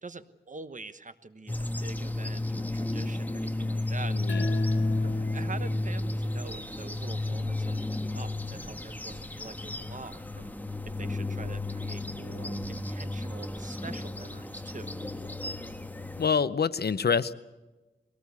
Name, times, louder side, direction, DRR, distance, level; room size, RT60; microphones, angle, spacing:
voice 1, 0.0-4.6 5.0-10.5 10.8-14.9, right 3 dB, 45° right, 12 dB, 1.2 m, -45 dB
sound 1, 1.5-16.3, left 2 dB, 10° left, 1.3 m, -32 dB
voice 2, 4.1-4.5 16.2-17.3, left 6 dB, 60° left, 16 dB, 0.7 m, -26 dB
sound 2, 4.3-7.5, equal, 85° left, 2.0 m, -41 dB
22.0 x 18.5 x 8.5 m, 1.2 s
wide cardioid pair, 85°, 19 cm